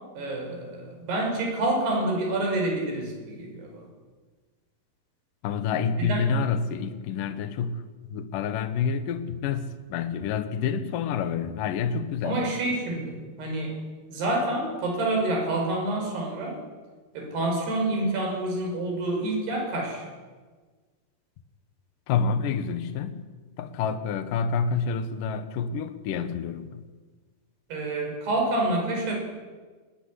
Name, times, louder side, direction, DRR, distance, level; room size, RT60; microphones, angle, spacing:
voice 1, 0.2-3.9 6.0-6.2 12.2-13.8 14.1-16.6 17.1-20.0 27.7-29.1, right 2 dB, 80° right, 2 dB, 7.7 m, -28 dB
voice 2, 5.4-12.5 22.1-23.2 23.6-26.8, left 6 dB, 65° left, 9 dB, 2.7 m, -28 dB
21.0 x 18.0 x 10.0 m, 1.4 s
omnidirectional pair, 4.6 m